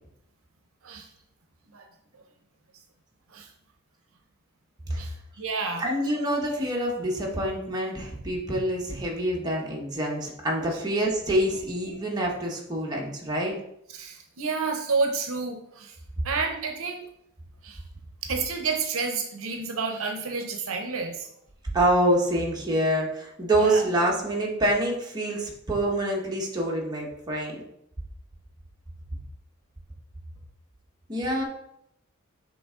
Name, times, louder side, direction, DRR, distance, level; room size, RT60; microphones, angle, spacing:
voice 1, 4.9-5.8 10.6-10.8 11.5-11.6 11.9-12.0 13.9-16.0 16.2-17.0 17.6-17.8 18.2-21.3 23.5-23.8, right 4 dB, 70° right, 4 dB, 0.7 m, -30 dB
voice 2, 5.8-13.5 21.7-27.6 31.1-31.4, right 1 dB, 20° right, -2 dB, 1.1 m, -26 dB
7.8 x 3.3 x 3.7 m, 0.78 s
head